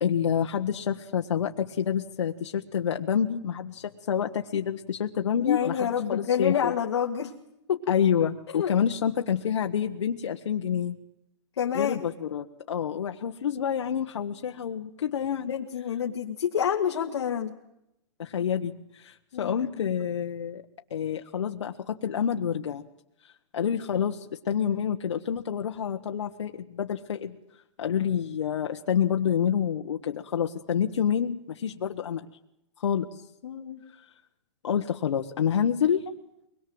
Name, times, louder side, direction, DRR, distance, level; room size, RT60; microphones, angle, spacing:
voice 1, 0.0-6.7 7.9-11.0 11.7-15.5 18.2-20.6 20.9-22.8 23.5-27.4 27.8-32.3 32.8-33.1 34.6-36.1, left 8 dB, 80° left, 3 dB, 1.3 m, -28 dB
voice 2, 5.4-7.3 7.7-7.8 8.5-8.7 11.6-12.0 15.5-17.6 19.3-19.7 33.4-33.8, left 8 dB, 65° left, 1 dB, 2.0 m, -28 dB
23.5 x 21.5 x 7.8 m, 0.82 s
hypercardioid pair, 180°, 15 cm